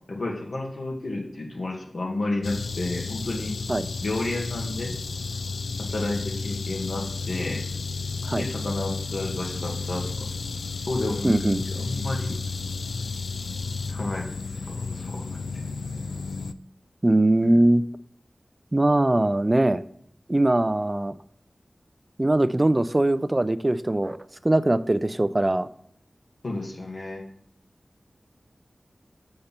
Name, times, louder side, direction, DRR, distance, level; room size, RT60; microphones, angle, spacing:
voice 1, 0.1-3.5 4.0-4.9 5.8-7.6 8.3-10.3 10.9-11.4 11.7-12.4 13.9-15.2 17.4-17.5 26.4-27.3, left 2 dB, 75° left, 1 dB, 1.8 m, -31 dB
sound 1, 2.4-16.5, left 4 dB, 90° left, 0.3 m, -32 dB
voice 2, 11.2-11.6 17.0-17.8 18.7-19.8 20.3-21.1 22.2-24.2 24.4-25.7, right 1 dB, 30° right, 14 dB, 0.4 m, -21 dB
6.7 x 5.4 x 5.9 m, 0.67 s
cardioid pair, 45°, 0 cm